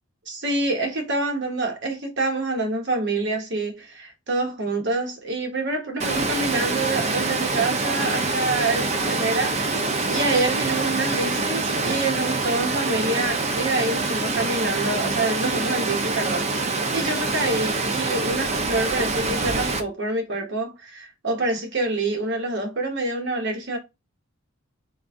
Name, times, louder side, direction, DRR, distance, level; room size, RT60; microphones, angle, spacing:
voice 1, 0.3-23.8, right 2 dB, 50° right, 1.0 m, -26 dB
Water, 6.0-19.8, right 3 dB, 30° right, 0.4 m, -25 dB
3.9 x 2.4 x 3.5 m
head